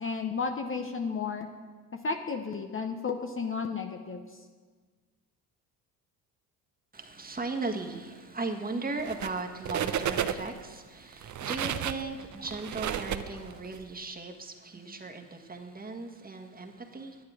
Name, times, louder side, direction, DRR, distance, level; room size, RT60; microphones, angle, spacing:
voice 1, 0.0-1.5 2.0-4.2 12.0-12.1, left 5 dB, 25° left, 5 dB, 0.9 m, -33 dB
voice 2, 6.9-17.2, right 3 dB, 20° right, 3 dB, 1.6 m, -37 dB
sound 1, 9.0-9.4 9.6-10.6 11.1-13.8, right 9 dB, 40° right, 0.8 m, -32 dB
10.5 x 10.0 x 4.9 m, 1.5 s
hypercardioid pair, 55°, 46 cm